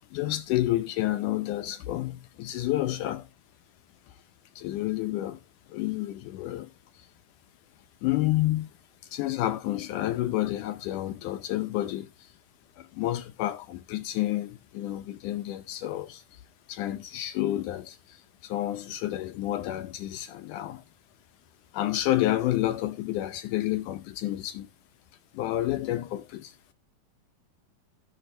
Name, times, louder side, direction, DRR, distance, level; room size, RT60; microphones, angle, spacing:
voice 1, 0.1-3.3 4.6-5.4 5.7-6.7 7.0-7.1 8.0-8.7 9.1-12.3 12.8-16.4 16.7-20.8 21.7-24.7 25.3-26.5, left 14 dB, 75° left, 2.0 m, -30 dB
14.5 x 6.7 x 3.2 m
omnidirectional pair, 4.1 m